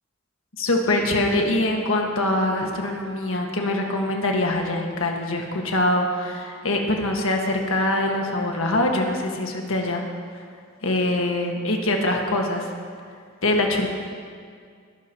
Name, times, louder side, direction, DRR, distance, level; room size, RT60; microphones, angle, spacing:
voice 1, 0.6-10.0 10.8-12.7 13.4-13.9, left 1 dB, 75° left, 1 dB, 1.7 m, -23 dB
20.0 x 13.0 x 3.0 m, 2.1 s
head